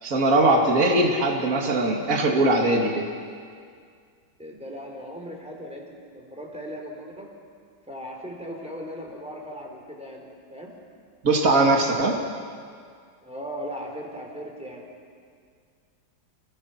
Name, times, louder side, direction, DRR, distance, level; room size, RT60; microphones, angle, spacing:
voice 1, 0.0-3.1 11.2-12.2, right 2 dB, 45° right, 1 dB, 2.7 m, -20 dB
voice 2, 4.4-7.3 7.9-10.7 13.2-14.9, equal, 5° right, 0 dB, 3.9 m, -38 dB
30.0 x 19.5 x 5.8 m, 2.1 s
omnidirectional pair, 2.0 m